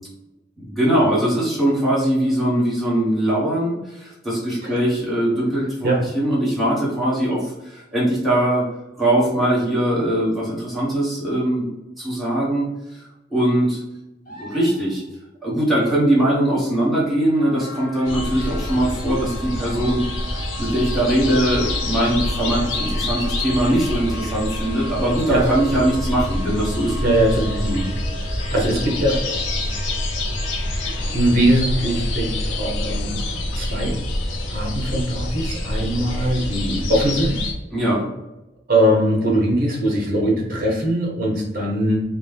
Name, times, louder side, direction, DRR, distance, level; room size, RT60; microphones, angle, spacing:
voice 1, 0.6-5.9 6.1-8.7 9.0-11.7 12.0-12.7 13.3-13.8 14.4-15.0 15.4-20.0 20.6-26.9 27.6-27.9 37.7-38.1, right 1 dB, ahead, -8 dB, 1.2 m, -21 dB
sound 1, 14.3-15.2 18.7-18.8, right 1 dB, 50° left, 1.1 m, -41 dB
sound 2, 17.2-33.7, equal, 20° right, 1.0 m, -39 dB
sound 3, 18.0-37.5, left 1 dB, 90° left, 0.7 m, -26 dB
voice 2, 27.0-27.8 28.2-29.4 30.8-34.0 34.5-37.4 38.7-42.0, right 1 dB, 50° right, -1 dB, 1.0 m, -21 dB
4.0 x 2.2 x 3.4 m, 0.99 s
head